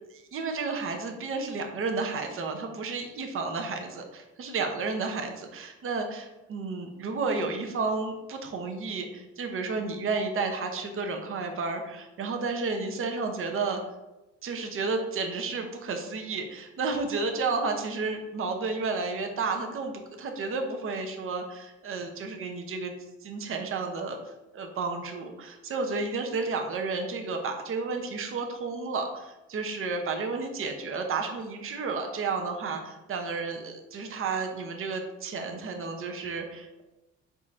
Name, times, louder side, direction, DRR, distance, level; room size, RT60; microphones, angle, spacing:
voice 1, 0.1-13.8 14.4-22.9 23.2-24.2 24.5-36.8, right 4 dB, 45° right, 4 dB, 0.7 m, -32 dB
4.2 x 3.7 x 2.4 m, 1.0 s
cardioid pair, 90°, 30 cm